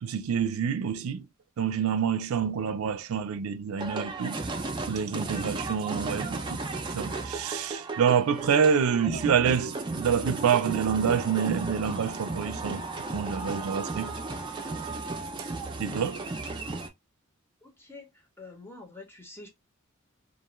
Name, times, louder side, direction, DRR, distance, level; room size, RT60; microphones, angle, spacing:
voice 1, 0.0-1.3 1.6-4.4 4.9-6.6 6.9-12.8 13.1-14.1 15.8-16.2, right 7 dB, 90° right, 0.4 m, -27 dB
sound 1, 3.8-16.9, right 3 dB, 20° right, 0.4 m, -35 dB
voice 2, 17.6-18.1 18.4-19.5, left 3 dB, 10° left, 0.7 m, -46 dB
2.4 x 2.3 x 3.0 m
head